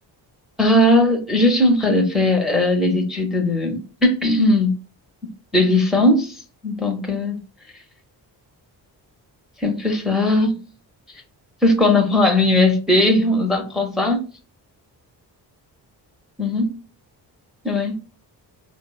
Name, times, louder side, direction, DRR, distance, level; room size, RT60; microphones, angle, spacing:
voice 1, 0.6-4.8 5.5-7.4 9.6-10.5 11.6-14.2 16.4-16.7 17.6-18.0, left 1 dB, ahead, 0.6 m, -18 dB
3.1 x 2.0 x 2.2 m
cardioid pair, 75°, 41 cm